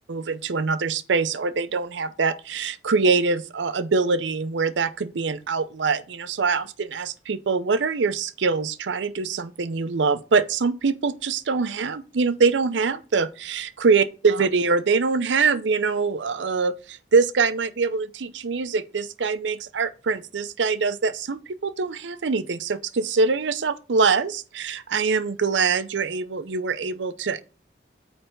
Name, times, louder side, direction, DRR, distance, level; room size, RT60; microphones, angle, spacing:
voice 1, 0.1-27.4, right 4 dB, 85° right, 0.6 m, -24 dB
8.8 x 3.3 x 5.3 m
head